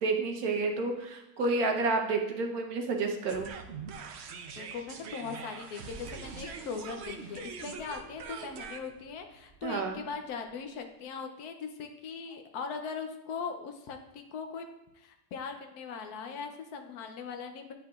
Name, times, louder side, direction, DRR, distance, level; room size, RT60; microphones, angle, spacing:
voice 1, 0.0-3.5 9.6-10.0, right 3 dB, 75° right, 3 dB, 1.4 m, -30 dB
sound 1, 3.3-10.4, right 6 dB, 60° right, 0.7 m, -43 dB
voice 2, 4.6-14.7 14.9-17.7, left 5 dB, 90° left, 5 dB, 1.2 m, -40 dB
9.6 x 5.6 x 2.4 m, 0.88 s
omnidirectional pair, 1.6 m